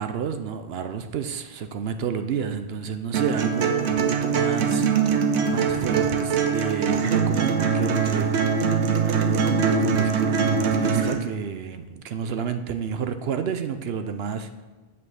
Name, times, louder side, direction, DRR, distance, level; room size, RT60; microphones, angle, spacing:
voice 1, 0.0-4.9 5.4-8.3 9.0-14.5, right 7 dB, 70° right, 9 dB, 0.8 m, -30 dB
sound 1, 3.1-11.1, right 6 dB, 90° right, 1.1 m, -22 dB
8.3 x 5.4 x 6.3 m, 1.2 s
omnidirectional pair, 1.1 m